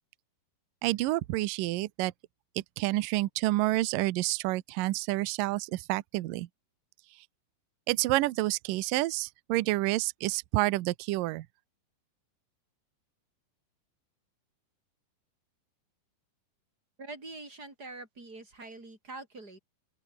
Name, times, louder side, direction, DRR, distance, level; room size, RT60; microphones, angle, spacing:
voice 1, 0.8-2.1 2.8-6.5 7.9-11.5, right 18 dB, 85° right, 1.9 m, -29 dB
voice 2, 17.0-19.6, right 3 dB, 20° right, 7.5 m, -44 dB
open air
omnidirectional pair, 5.1 m